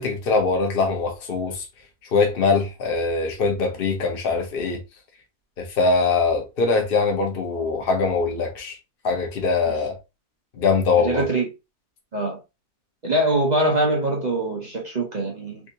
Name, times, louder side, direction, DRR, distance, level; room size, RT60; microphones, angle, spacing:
voice 1, 0.0-1.6 2.1-4.8 5.6-8.8 9.0-9.9 10.6-11.2, left 4 dB, 45° left, 0.9 m, -22 dB
voice 2, 11.0-11.5 12.1-12.4 13.0-15.6, right 1 dB, 40° right, 0.6 m, -23 dB
3.6 x 2.7 x 2.7 m
omnidirectional pair, 1.7 m